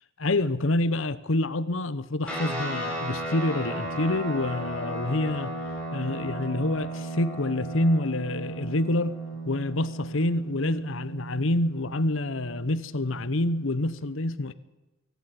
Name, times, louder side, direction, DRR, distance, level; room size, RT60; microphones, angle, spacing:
voice 1, 0.2-5.5 5.9-9.2 9.5-14.5, left 2 dB, 65° left, 1.0 m, -27 dB
sound 1, 2.3-14.0, right 2 dB, 5° left, 6.3 m, -35 dB
24.0 x 12.5 x 10.0 m
head